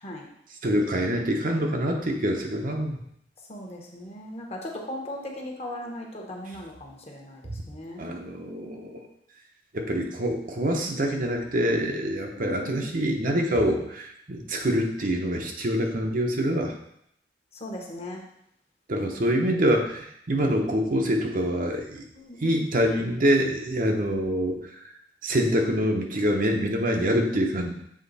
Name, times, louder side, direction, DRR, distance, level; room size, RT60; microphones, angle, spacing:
voice 1, 0.6-3.0 8.0-9.0 9.7-16.7 18.9-22.0 22.4-24.8 25.2-27.7, equal, 50° right, 2 dB, 0.9 m, -25 dB
voice 2, 3.5-7.4 7.7-8.0 12.3-12.8 17.6-18.2 22.1-22.6, left 1 dB, 35° left, 0 dB, 1.2 m, -38 dB
7.4 x 3.7 x 4.1 m, 0.72 s
head